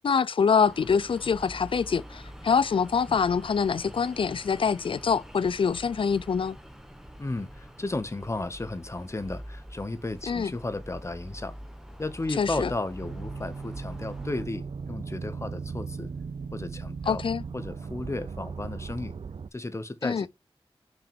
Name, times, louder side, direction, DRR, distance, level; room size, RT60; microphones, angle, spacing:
voice 1, 0.0-6.6 10.3-10.5 12.4-12.7 17.1-17.4 20.0-20.3, left 6 dB, 65° left, 0.4 m, -25 dB
sound 1, 0.7-14.4, equal, 5° right, 1.3 m, -45 dB
voice 2, 7.2-11.6 12.0-16.1 16.5-17.2 17.5-19.2 19.5-20.3, left 2 dB, 30° left, 0.9 m, -34 dB
sound 2, 13.0-19.5, right 5 dB, 70° right, 0.5 m, -37 dB
6.1 x 5.1 x 4.5 m
wide cardioid pair, 85°, 10 cm